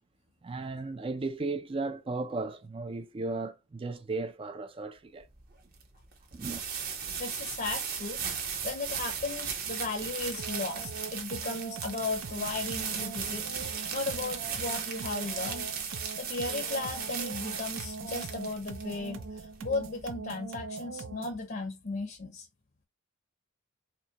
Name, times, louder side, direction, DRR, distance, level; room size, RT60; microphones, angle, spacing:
voice 1, 0.4-5.3 6.3-6.7, right 3 dB, 25° right, 0.4 m, -35 dB
sound 1, 5.2-20.1, right 6 dB, 45° right, 1.0 m, -37 dB
voice 2, 7.2-8.2 8.6-15.7 16.2-22.5, left 3 dB, 45° left, 0.7 m, -36 dB
sound 2, 10.4-21.5, right 4 dB, 75° right, 0.6 m, -42 dB
4.4 x 2.2 x 2.8 m
head